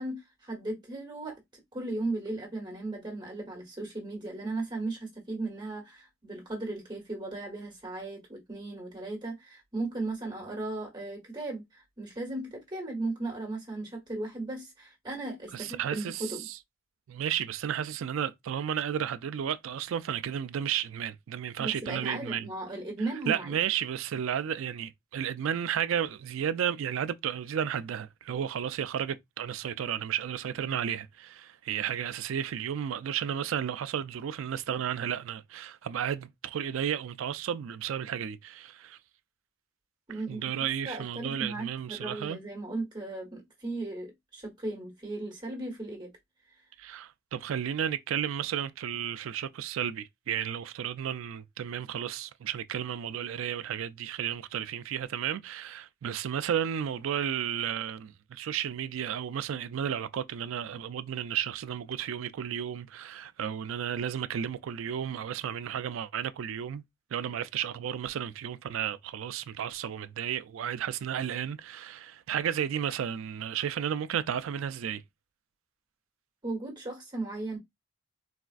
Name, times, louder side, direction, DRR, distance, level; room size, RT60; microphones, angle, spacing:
voice 1, 0.0-1.4 1.7-16.4 21.6-23.6 40.1-40.5 40.8-46.1 76.4-77.6, right 2 dB, 20° right, 1.2 m, -36 dB
voice 2, 15.5-16.6 17.1-22.5 23.3-39.0 40.1-42.4 46.8-66.8 67.1-75.0, right 9 dB, 70° right, 0.3 m, -33 dB
4.1 x 2.3 x 2.4 m
head